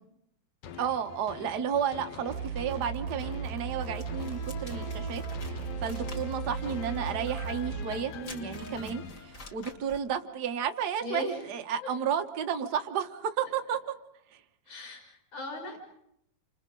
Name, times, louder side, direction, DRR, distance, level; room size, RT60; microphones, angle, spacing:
sound 1, 0.6-10.0 10.5-10.6, left 8 dB, 90° left, 2.7 m, -44 dB
voice 1, 0.8-5.2 5.5-8.1 8.4-13.8, right 8 dB, 60° right, 6 dB, 1.0 m, -32 dB
sound 2, 2.3-7.9, right 7 dB, 80° right, 2.3 m, -36 dB
sound 3, 4.0-10.1, left 2 dB, 35° left, 1.6 m, -49 dB
voice 2, 8.1-9.0 11.0-11.4 11.8-11.9 14.7-15.8, left 1 dB, 55° left, 0 dB, 6.3 m, -39 dB
29.5 x 26.5 x 3.8 m, 0.76 s
omnidirectional pair, 3.5 m